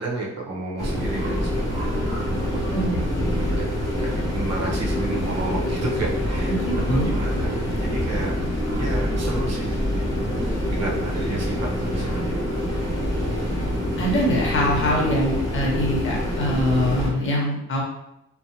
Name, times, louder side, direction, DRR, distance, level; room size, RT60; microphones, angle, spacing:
voice 1, 0.0-2.1 2.5-3.0 3.4-3.6 4.0-6.6 6.9-8.3 8.8-10.1 10.7-12.6, right 2 dB, 55° right, -2 dB, 0.8 m, -32 dB
sound 1, 0.8-17.1, equal, 10° left, 1.0 m, -25 dB
voice 2, 6.5-7.1 14.0-17.8, equal, 40° left, -2 dB, 1.0 m, -23 dB
2.5 x 2.1 x 2.9 m, 0.80 s
cardioid pair, 90°, 30 cm